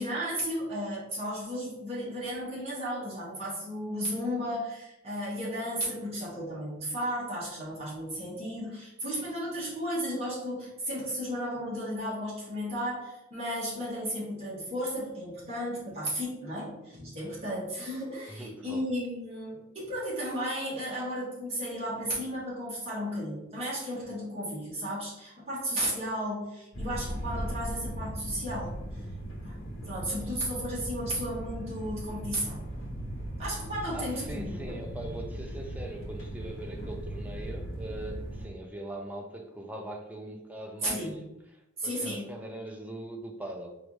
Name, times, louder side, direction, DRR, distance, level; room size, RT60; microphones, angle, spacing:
voice 1, 0.0-29.0 29.4-29.6 29.9-32.6 33.4-34.8 40.8-41.2 41.8-42.2, equal, 30° right, -7 dB, 1.5 m, -34 dB
voice 2, 18.3-18.8 33.9-41.1 41.8-43.7, right 1 dB, 10° right, 2 dB, 0.4 m, -41 dB
sound 1, 26.7-38.5, right 1 dB, 85° left, 1.0 m, -38 dB
4.6 x 2.6 x 3.1 m, 0.90 s
head